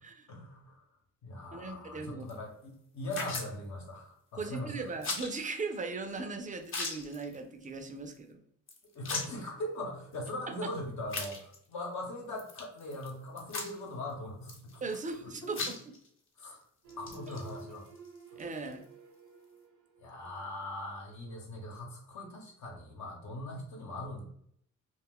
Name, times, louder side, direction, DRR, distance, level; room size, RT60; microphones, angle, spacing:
voice 1, 0.3-0.8 1.2-4.9 8.9-14.8 15.2-15.5 16.4-16.6 17.0-17.9 20.0-24.2, left 1 dB, 65° left, 0 dB, 1.0 m, -40 dB
voice 2, 1.5-2.2 4.4-8.4 14.8-15.8 18.4-18.8, right 3 dB, 25° right, 6 dB, 0.5 m, -38 dB
sound 1, 2.3-2.4 3.1-3.5 5.0-5.3 5.7-5.8 6.1-6.2 6.6-7.4 7.6-7.8 8.1-8.2 8.7-9.5 10.1-10.2 11.1-11.7 12.4-13.1 13.4-13.9 14.4-15.2 15.4-16.1 16.4-16.5 16.9-18.8, left 3 dB, 45° left, 0.8 m, -38 dB
sound 2, 16.8-20.8 21.2-21.4, right 4 dB, 80° right, 0.7 m, -52 dB
2.4 x 2.3 x 3.6 m, 0.68 s
cardioid pair, 90°, 30 cm